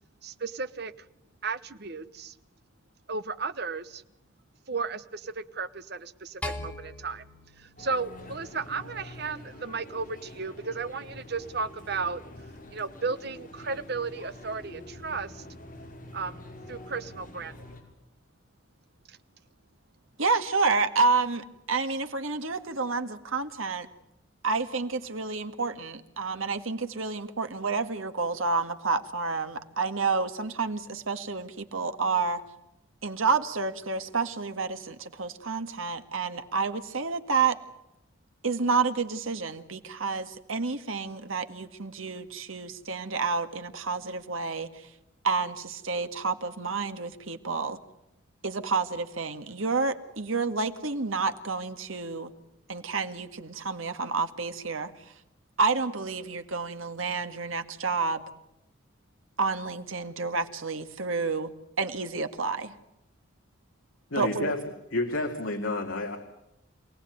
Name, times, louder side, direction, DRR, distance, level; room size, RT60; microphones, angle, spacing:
voice 1, 0.2-0.9 1.4-2.3 3.1-4.0 4.7-7.2 7.6-12.2 12.7-15.4 16.1-16.4 16.7-17.5, right 4 dB, 50° right, 1.1 m, -34 dB
sound 1, 6.4-8.8, left 1 dB, 5° left, 2.1 m, -40 dB
sound 2, 7.8-17.8, left 1 dB, 40° left, 5.4 m, -46 dB
voice 2, 20.2-23.9 24.4-32.4 33.0-37.6 38.4-44.9 45.2-47.8 48.4-52.3 52.7-55.1 55.6-58.2 59.4-61.5 61.8-62.8 64.2-64.5, right 4 dB, 85° right, 1.9 m, -29 dB
voice 3, 64.1-64.6 64.9-66.2, left 2 dB, 75° left, 2.6 m, -29 dB
27.0 x 18.5 x 9.4 m
head